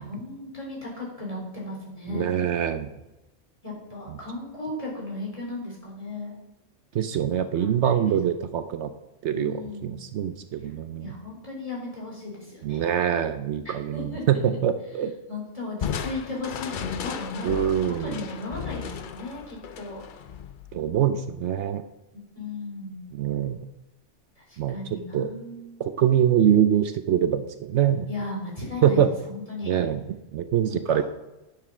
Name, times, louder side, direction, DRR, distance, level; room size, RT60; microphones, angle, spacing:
voice 1, 0.0-2.3 3.6-6.4 7.5-8.0 8.3-8.4 9.3-10.0 11.0-12.8 13.6-14.2 15.3-20.0 22.1-23.0 24.4-25.7 28.1-29.7 30.7-31.0, left 2 dB, 30° left, -4 dB, 3.8 m, -36 dB
voice 2, 2.1-2.9 6.9-8.9 9.2-11.1 12.6-15.1 17.4-18.2 20.7-21.8 23.1-23.7 24.6-24.8 25.1-25.3 25.8-28.1 28.8-29.1 29.6-31.0, right 9 dB, 70° right, 10 dB, 0.9 m, -24 dB
Crushing, 15.8-21.2, left 8 dB, 55° left, 0.6 m, -35 dB
10.5 x 6.6 x 6.0 m, 0.98 s
omnidirectional pair, 1.2 m